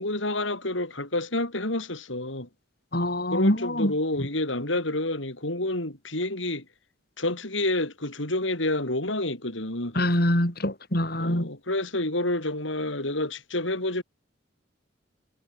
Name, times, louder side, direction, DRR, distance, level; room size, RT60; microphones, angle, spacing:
voice 1, 0.0-2.5 3.3-6.6 7.2-10.0 11.2-14.0, left 2 dB, 75° left, 6.4 m, -29 dB
voice 2, 2.9-3.9 10.0-11.5, left 1 dB, 50° left, 5.7 m, -24 dB
head